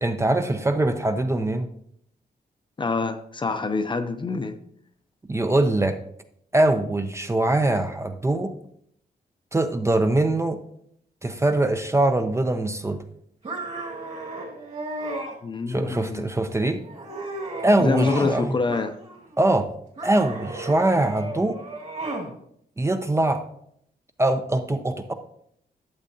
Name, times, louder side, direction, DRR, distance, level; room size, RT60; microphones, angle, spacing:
voice 1, 0.0-1.7 5.3-6.0 6.5-8.5 9.5-10.6 11.2-13.0 15.7-16.8 17.6-18.6 19.4-19.7 20.0-21.6 22.8-23.4 24.2-25.1, right 2 dB, 15° right, 7 dB, 0.5 m, -22 dB
voice 2, 2.8-4.6 15.4-16.3 17.8-19.0, left 4 dB, 30° left, 8 dB, 0.6 m, -26 dB
sound 1, 13.4-15.3 15.9-16.4 16.8-18.4 18.7-19.4 20.0-22.3, right 2 dB, 45° right, 2.3 m, -34 dB
12.0 x 7.2 x 2.7 m, 0.69 s
wide cardioid pair, 145°, 17 cm